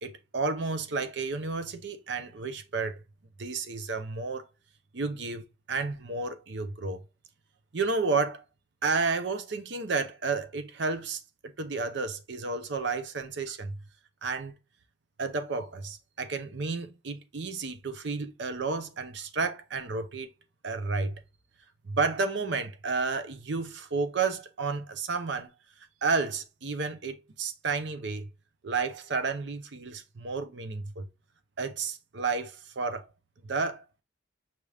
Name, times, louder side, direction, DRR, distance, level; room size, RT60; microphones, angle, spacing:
voice 1, 0.0-3.0 3.4-4.4 4.9-7.0 7.7-8.4 8.8-13.8 14.2-14.5 15.2-20.3 20.6-21.2 21.9-25.5 26.0-28.3 28.6-31.1 31.6-33.0 33.4-34.0, right 4 dB, 65° right, 0.6 m, -31 dB
5.9 x 3.3 x 2.4 m
head